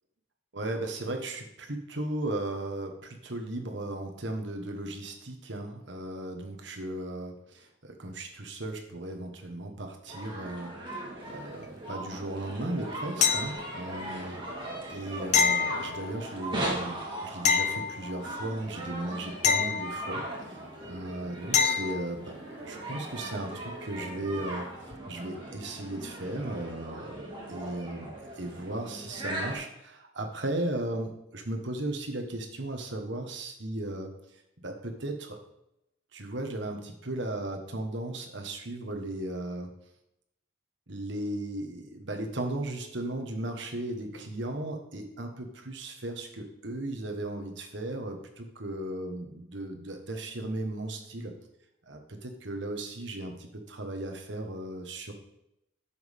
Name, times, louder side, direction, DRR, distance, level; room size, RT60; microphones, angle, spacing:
voice 1, 0.5-14.4 14.9-24.7 25.1-35.4 36.1-39.7 40.9-51.3 51.9-55.1, right 1 dB, 60° right, 4 dB, 1.5 m, -36 dB
sound 1, 10.1-29.6, right 1 dB, 25° right, 2.1 m, -39 dB
sound 2, 13.2-14.0 15.3-16.4 17.4-18.5 19.4-20.5 21.5-22.1 24.9-25.0, left 6 dB, 35° left, 0.5 m, -27 dB
10.5 x 7.3 x 3.6 m, 0.84 s
head